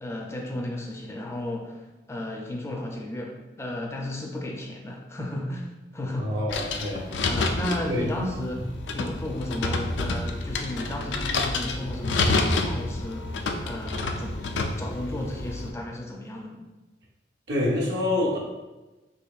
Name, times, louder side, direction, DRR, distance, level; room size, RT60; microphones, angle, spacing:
voice 1, 0.0-6.4 7.3-8.7 8.9-14.4 14.8-16.6, left 1 dB, 15° left, 1 dB, 0.4 m, -34 dB
voice 2, 6.2-7.3 7.9-8.1 17.5-18.4, left 1 dB, 80° right, -4 dB, 1.0 m, -27 dB
sound 1, 6.5-15.7, left 3 dB, 90° left, 0.4 m, -29 dB
4.4 x 2.9 x 2.4 m, 1.1 s
head